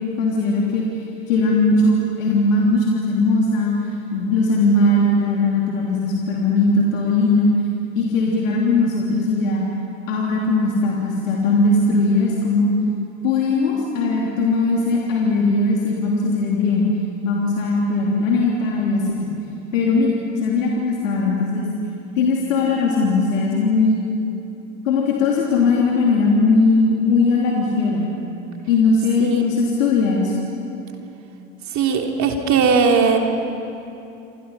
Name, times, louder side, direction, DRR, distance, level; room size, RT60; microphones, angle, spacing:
voice 1, 0.2-0.8 1.3-3.7 4.1-7.5 7.9-9.6 10.1-12.7 13.2-16.9 17.2-19.3 19.7-21.7 22.1-24.0 24.8-28.1 28.7-30.3, left 3 dB, 75° left, -3 dB, 3.3 m, -19 dB
voice 2, 31.7-33.2, right 5 dB, 45° right, 2 dB, 3.3 m, -18 dB
28.5 x 25.0 x 5.7 m, 2.8 s
hypercardioid pair, 75°, 39 cm